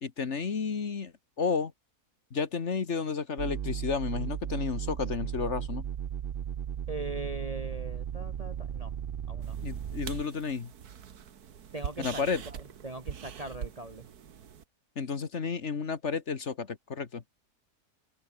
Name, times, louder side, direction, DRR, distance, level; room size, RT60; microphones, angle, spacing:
voice 1, 0.0-1.7 2.3-5.9 9.6-10.7 12.0-12.4 14.9-17.2, left 5 dB, 50° left, 1.7 m, -32 dB
sound 1, 3.4-10.2, right 9 dB, 50° right, 0.7 m, -36 dB
voice 2, 6.9-8.9 9.3-9.6 11.7-12.2 12.8-14.1, right 2 dB, 30° right, 1.0 m, -40 dB
sound 2, 9.4-14.6, right 8 dB, 80° right, 1.8 m, -43 dB
omnidirectional pair, 1.6 m